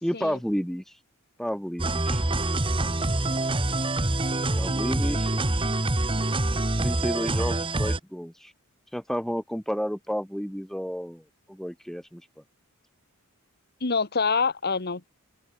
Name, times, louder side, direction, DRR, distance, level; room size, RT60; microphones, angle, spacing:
voice 1, 0.0-0.8 1.4-2.2 4.6-5.4 6.8-8.5 8.9-12.2, equal, ahead, 2.8 m, -31 dB
sound 1, 1.8-8.0, right 2 dB, 25° right, 1.3 m, -26 dB
voice 2, 13.8-15.1, left 4 dB, 45° left, 1.5 m, -26 dB
head